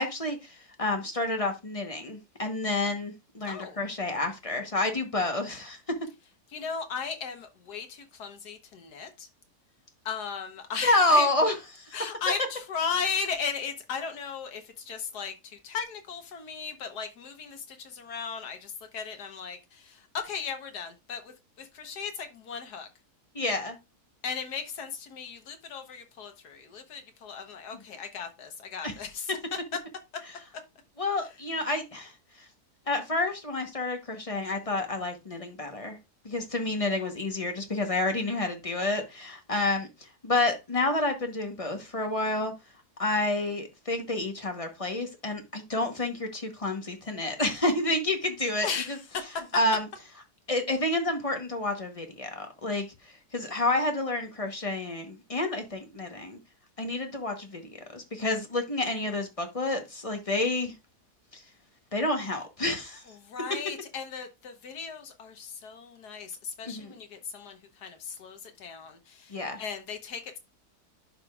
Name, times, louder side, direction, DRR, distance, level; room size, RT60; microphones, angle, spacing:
voice 1, 0.0-5.8 10.8-11.9 23.3-23.8 28.8-28.9 31.0-32.1 32.9-36.0 36.2-39.9 40.2-42.5 43.0-48.7 49.5-49.8 50.5-52.9 53.3-56.4 56.8-57.6 57.9-60.7 61.3-61.4 61.9-63.0 66.6-66.9 69.3-69.6, left 2 dB, 25° left, 1.0 m, -29 dB
voice 2, 3.5-3.8 6.5-9.3 10.0-11.3 11.9-22.9 24.2-29.6 31.2-31.4 48.6-49.6 63.1-70.4, left 6 dB, 80° left, 1.7 m, -36 dB
11.0 x 5.0 x 2.4 m
omnidirectional pair, 1.7 m